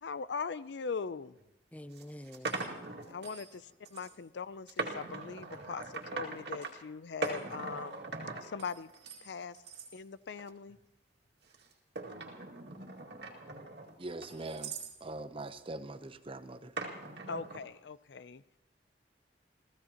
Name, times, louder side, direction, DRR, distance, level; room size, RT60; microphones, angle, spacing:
voice 1, 0.0-1.3 3.1-8.0 8.4-8.9 9.2-9.6 9.9-10.8 17.3-18.4, left 5 dB, 70° left, 16 dB, 0.5 m, -40 dB
sound 1, 1.4-1.5 2.0-3.6 3.9-4.2 4.7-6.7 7.2-9.2 9.5-9.9 10.4-10.8 11.5-15.0 16.8-17.6, right 3 dB, 70° right, 2.2 m, -41 dB
voice 2, 1.7-2.5, equal, 10° left, 12 dB, 0.5 m, -46 dB
voice 3, 14.0-14.8 15.0-16.7, right 2 dB, 30° right, 10 dB, 0.8 m, -42 dB
28.5 x 15.0 x 2.9 m, 0.88 s
head